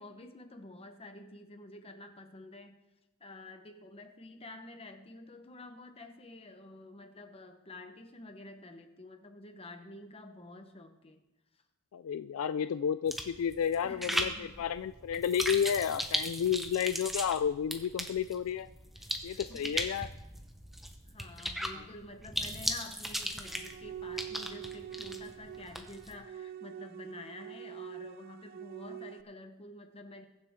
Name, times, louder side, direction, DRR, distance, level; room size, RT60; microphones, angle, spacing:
voice 1, 0.0-2.8 3.2-11.2 13.8-14.7 15.6-15.9 19.0-20.1 21.1-30.2, left 2 dB, 25° left, 6 dB, 1.1 m, -49 dB
voice 2, 11.9-18.7 19.2-20.1, left 8 dB, 65° left, 12 dB, 0.3 m, -31 dB
sound 1, 13.1-26.1, equal, ahead, 0.9 m, -38 dB
sound 2, 23.4-29.2, right 10 dB, 40° right, 0.3 m, -45 dB
21.5 x 7.2 x 3.7 m, 0.99 s
head